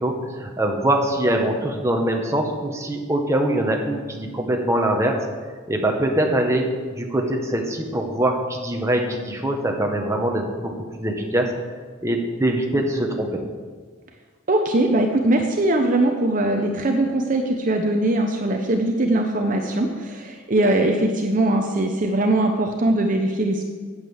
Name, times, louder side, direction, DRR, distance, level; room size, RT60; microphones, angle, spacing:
voice 1, 0.0-5.2 5.7-11.5 12.0-13.5, right 1 dB, 15° right, 1 dB, 1.2 m, -23 dB
voice 2, 14.5-23.6, right 1 dB, 40° right, 3 dB, 0.8 m, -21 dB
8.8 x 8.2 x 7.2 m, 1.5 s
head